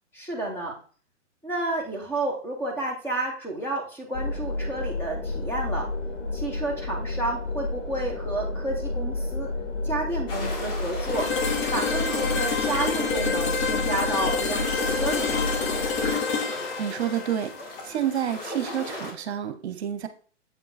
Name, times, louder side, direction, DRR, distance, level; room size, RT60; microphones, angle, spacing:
voice 1, 0.1-0.8 1.4-5.9 6.3-9.5 9.8-11.3 11.7-15.5, right 2 dB, 5° left, 1 dB, 1.3 m, -31 dB
sound 1, 4.1-16.1, left 2 dB, 70° left, 1.7 m, -31 dB
sound 2, 10.3-19.1, left 1 dB, 50° left, 2.7 m, -35 dB
sound 3, 11.1-18.9, left 5 dB, 25° left, 0.8 m, -29 dB
voice 2, 16.8-20.1, right 10 dB, 60° right, 10 dB, 1.0 m, -29 dB
7.5 x 3.8 x 4.1 m, 0.43 s
hypercardioid pair, 145°, 37 cm